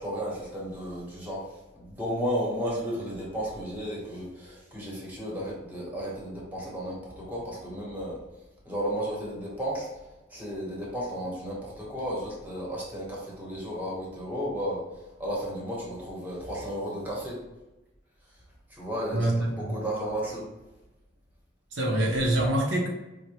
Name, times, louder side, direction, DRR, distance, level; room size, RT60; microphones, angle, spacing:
voice 1, 0.0-1.5 1.7-8.2 8.6-10.0 10.3-17.4 18.7-19.3 19.5-20.5, equal, 10° right, -5 dB, 1.0 m, -33 dB
voice 2, 19.1-19.8 21.7-22.9, right 1 dB, 90° right, -2 dB, 0.8 m, -25 dB
4.5 x 2.1 x 2.9 m, 1.0 s
head